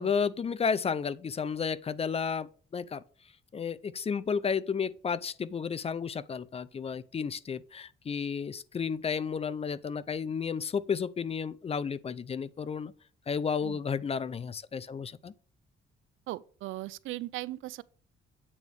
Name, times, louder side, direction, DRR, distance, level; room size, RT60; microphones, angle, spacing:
voice 1, 0.0-3.0 3.5-12.9 13.3-15.3, left 6 dB, 30° left, 0.5 m, -32 dB
voice 2, 16.3-17.8, right 17 dB, 85° right, 0.4 m, -38 dB
8.5 x 3.4 x 6.1 m
cardioid pair, 90°, 20 cm